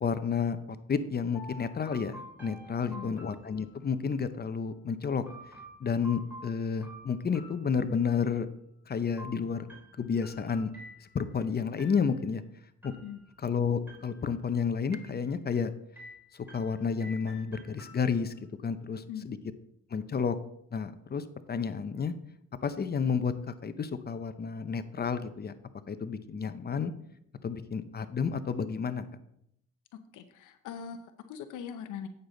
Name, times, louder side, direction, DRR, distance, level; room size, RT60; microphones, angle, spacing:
voice 1, 0.0-0.6 0.9-5.2 5.8-8.5 8.9-9.7 10.0-10.7 11.1-12.4 12.8-12.9 13.4-15.7 16.3-18.3 18.6-19.4 19.9-20.4 20.7-22.1 22.6-25.5 25.9-26.9 27.4-29.0, left 6 dB, 30° left, 11 dB, 0.7 m, -31 dB
sound 1, 1.3-4.1 5.3-8.3 9.2-11.4 11.8-12.4 12.8-13.5 13.9-14.5 14.9-15.6 16.0-18.4, equal, 5° right, 3.5 m, -50 dB
voice 2, 2.8-3.2 13.0-13.2 19.1-19.3 30.1-32.1, left 8 dB, 85° left, 8 dB, 0.7 m, -41 dB
8.8 x 6.7 x 3.9 m, 0.75 s
cardioid pair, 90°, 30 cm